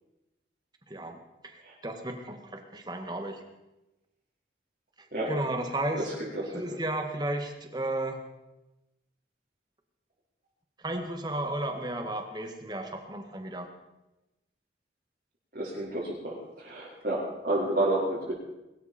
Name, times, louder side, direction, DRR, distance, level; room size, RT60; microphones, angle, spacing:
voice 1, 0.9-3.4 5.0-6.1 6.5-8.2 10.8-13.7, right 1 dB, 25° right, 5 dB, 1.8 m, -34 dB
voice 2, 5.9-6.3 6.5-6.6 15.5-18.3, right 1 dB, 55° right, -9 dB, 4.4 m, -30 dB
21.5 x 13.0 x 4.4 m, 0.98 s
head